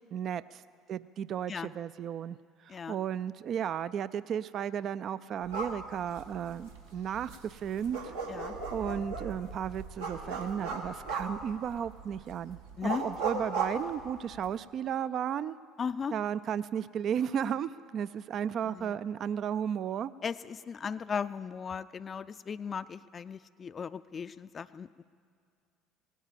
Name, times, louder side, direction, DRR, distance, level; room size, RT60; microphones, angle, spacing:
voice 1, 0.1-0.6 0.9-2.4 2.6-8.1 8.7-15.6 16.1-20.1, right 8 dB, 50° right, 16 dB, 0.3 m, -34 dB
sound 1, 5.4-14.6, right 4 dB, 85° right, 1.6 m, -38 dB
voice 2, 15.8-16.1 18.6-19.0 20.2-25.0, left 6 dB, 35° left, 14 dB, 0.4 m, -37 dB
18.0 x 9.9 x 7.4 m, 2.2 s
hypercardioid pair, 65°, 0 cm